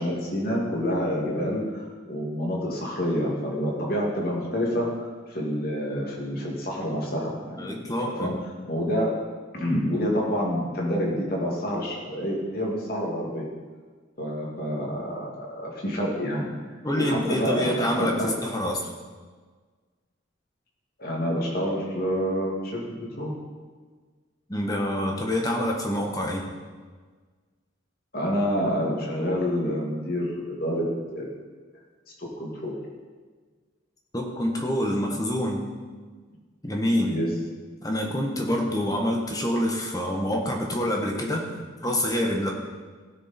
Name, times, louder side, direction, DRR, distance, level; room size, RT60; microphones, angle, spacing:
voice 1, 0.0-8.3 8.7-9.2 9.5-13.4 14.2-16.5 16.9-18.3 21.0-23.3 28.1-30.8 31.1-31.4 32.4-32.8 37.0-37.3, equal, 50° left, -2 dB, 2.4 m, -28 dB
voice 2, 7.6-8.3 16.8-18.9 24.5-26.5 34.1-35.6 36.6-37.2 37.8-41.5 41.8-42.5, left 1 dB, 20° left, 1 dB, 1.3 m, -26 dB
16.0 x 6.4 x 4.4 m, 1.5 s
head